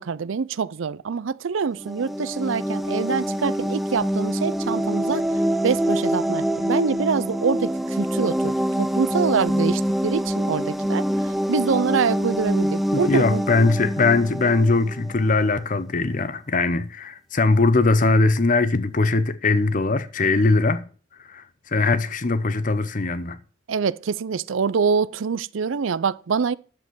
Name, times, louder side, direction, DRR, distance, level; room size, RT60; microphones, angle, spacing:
voice 1, 0.0-5.3 5.6-13.4 23.7-26.5, right 6 dB, 80° right, 0.5 m, -25 dB
sound 1, 1.7-15.3, equal, ahead, 0.5 m, -25 dB
voice 2, 12.9-20.8 21.3-23.4, left 3 dB, 40° left, 0.7 m, -21 dB
10.5 x 7.4 x 6.1 m
head